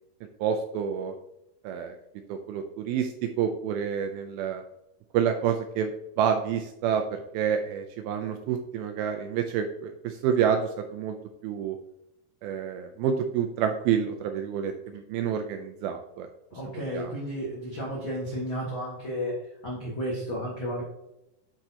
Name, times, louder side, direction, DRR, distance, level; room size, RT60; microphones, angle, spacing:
voice 1, 0.4-1.1 1.6-2.0 2.3-4.6 5.1-5.9 6.2-11.2 11.4-11.8 12.4-16.3 16.7-17.1, right 8 dB, 80° right, 5 dB, 2.2 m, -28 dB
voice 2, 16.5-19.3 19.6-20.8, equal, 80° left, -5 dB, 1.1 m, -32 dB
10.0 x 4.5 x 2.8 m, 0.85 s
omnidirectional pair, 4.8 m